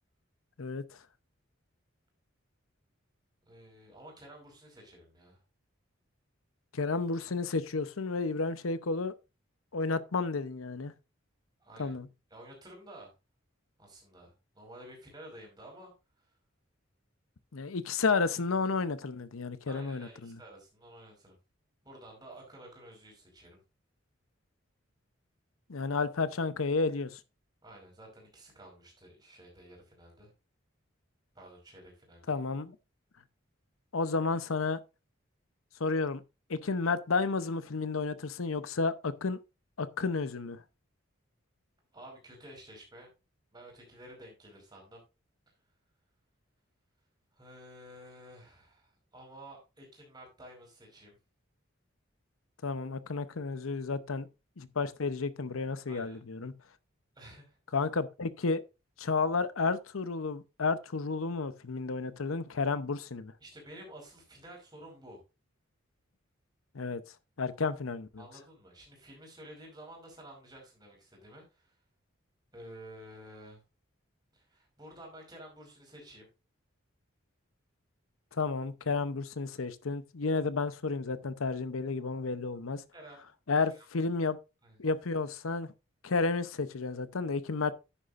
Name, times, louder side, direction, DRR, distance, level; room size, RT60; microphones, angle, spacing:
voice 1, 3.4-5.4 11.6-11.9 12.3-13.1 13.8-15.9 16.2-16.3 19.7-21.4 21.8-23.6 27.6-30.3 31.3-32.4 41.9-43.1 43.5-45.0 47.3-51.2 55.9-56.2 57.1-57.6 63.4-65.2 68.2-71.7 72.5-73.6 74.3-76.3 82.9-83.2 83.7-83.8 84.6-84.8, right 1 dB, 20° right, 5.1 m, -51 dB
voice 2, 6.7-9.1 9.7-10.9 11.8-12.1 17.5-20.4 25.7-27.2 32.3-32.7 33.9-34.8 35.8-36.2 36.5-39.4 39.8-40.6 52.6-54.3 54.6-56.5 57.7-58.6 59.0-63.3 66.7-67.0 67.4-68.2 78.3-82.8 83.5-84.4 84.8-85.7 86.0-87.7, left 4 dB, 90° left, 0.8 m, -31 dB
10.5 x 9.9 x 2.5 m
head